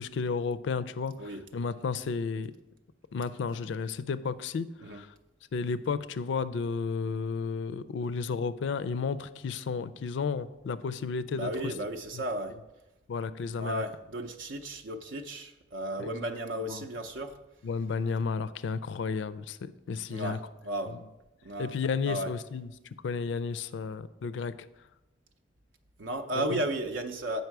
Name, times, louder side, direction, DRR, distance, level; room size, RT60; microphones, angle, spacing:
voice 1, 0.0-2.5 3.1-5.1 5.5-11.7 12.1-12.2 13.1-13.8 16.0-16.3 16.7-16.8 17.6-20.4 20.9-21.0 21.6-22.7 23.0-24.5 26.3-26.6, left 5 dB, 70° left, 15 dB, 0.4 m, -33 dB
voice 2, 11.3-12.5 13.6-17.3 20.1-20.9 21.4-21.7 22.1-22.3 26.0-27.4, right 1 dB, 75° right, 4 dB, 0.5 m, -34 dB
7.8 x 5.3 x 4.6 m, 0.99 s
head